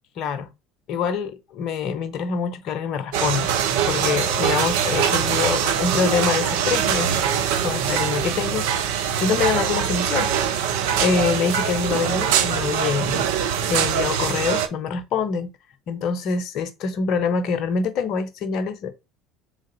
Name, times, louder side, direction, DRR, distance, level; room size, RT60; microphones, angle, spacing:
voice 1, 0.2-0.5 0.9-3.5 3.9-7.2 7.6-10.6 11.0-13.2 13.7-15.5 15.9-18.9, left 6 dB, 55° left, 0.6 m, -25 dB
sound 1, 3.1-14.7, right 8 dB, 65° right, 0.5 m, -23 dB
3.8 x 3.2 x 4.0 m
figure-of-eight pair, 65°, 0 cm